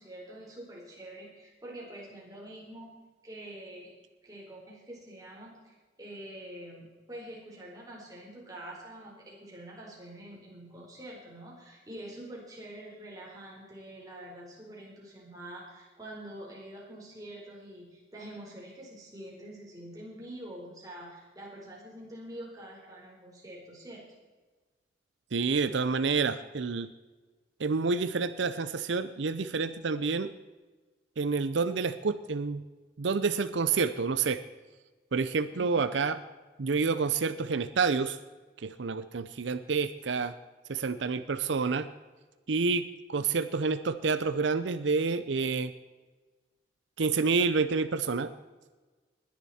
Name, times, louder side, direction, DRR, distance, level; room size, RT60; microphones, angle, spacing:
voice 1, 0.0-2.9 3.2-3.9 4.2-5.5 6.0-24.1 35.5-35.8, right 1 dB, 20° right, -3 dB, 4.2 m, -46 dB
voice 2, 25.3-26.9 27.6-30.3 31.2-32.6 33.0-34.4 35.1-36.2 36.6-38.2 38.6-40.3 40.7-41.9 42.5-45.7 47.0-48.3, right 4 dB, 85° right, 12 dB, 0.6 m, -28 dB
20.0 x 10.5 x 4.3 m, 1.3 s
head